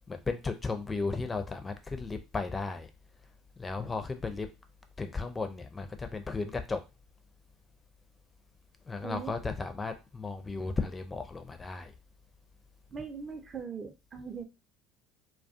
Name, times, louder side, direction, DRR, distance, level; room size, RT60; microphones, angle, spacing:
voice 1, 0.1-2.9 3.6-4.5 5.0-6.8 8.9-11.9, left 4 dB, 20° left, 7 dB, 0.4 m, -35 dB
voice 2, 9.0-9.3 12.9-14.4, right 6 dB, 35° right, 7 dB, 0.5 m, -40 dB
2.3 x 2.3 x 2.5 m, 0.27 s
hypercardioid pair, 65°, 0 cm